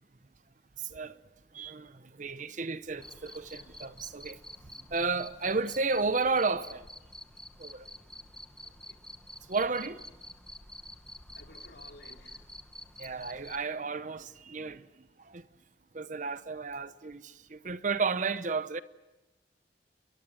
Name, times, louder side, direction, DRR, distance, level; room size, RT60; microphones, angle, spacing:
voice 1, 1.5-1.9 2.2-4.4 4.9-6.8 7.6-7.9 9.5-10.0 13.0-14.8 15.3-15.4 15.9-18.8, right 4 dB, 45° right, 0.8 m, -32 dB
Cricket, 3.0-13.6, left 1 dB, 5° left, 1.0 m, -49 dB
voice 2, 8.6-9.0 11.3-12.5, left 2 dB, 70° left, 4.1 m, -55 dB
29.5 x 22.5 x 7.5 m
head